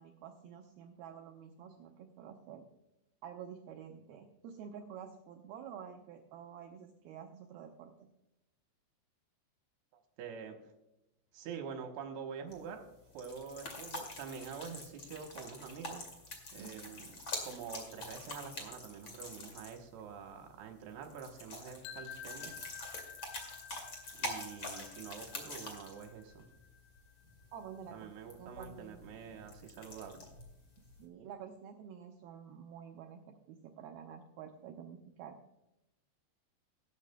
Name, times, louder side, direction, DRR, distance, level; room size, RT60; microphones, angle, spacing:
voice 1, 0.0-2.7 3.2-8.1 16.6-17.0 27.5-28.1 28.4-29.1 31.0-35.4, right 8 dB, 90° right, 4 dB, 2.1 m, -49 dB
voice 2, 10.2-10.6 11.3-12.8 13.1-16.0 16.5-17.1 17.4-22.5 24.2-26.5 27.9-30.3, right 6 dB, 70° right, 4 dB, 2.7 m, -46 dB
sound 1, 11.2-17.2, left 3 dB, 50° left, 1.7 m, -61 dB
sound 2, 12.5-31.0, left 2 dB, 35° left, 2.1 m, -46 dB
sound 3, 21.8-27.8, left 8 dB, 85° left, 2.3 m, -52 dB
19.0 x 9.4 x 2.2 m, 0.92 s
omnidirectional pair, 5.4 m